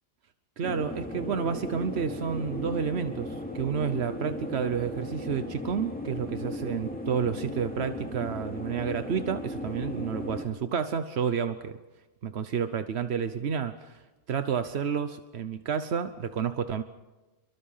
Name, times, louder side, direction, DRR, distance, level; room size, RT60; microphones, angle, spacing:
sound 1, 0.6-10.5, left 1 dB, 10° left, 2.8 m, -36 dB
voice 1, 0.6-11.8 12.2-16.8, right 7 dB, 90° right, 10 dB, 1.2 m, -30 dB
27.5 x 23.5 x 5.7 m, 1.1 s
omnidirectional pair, 1.1 m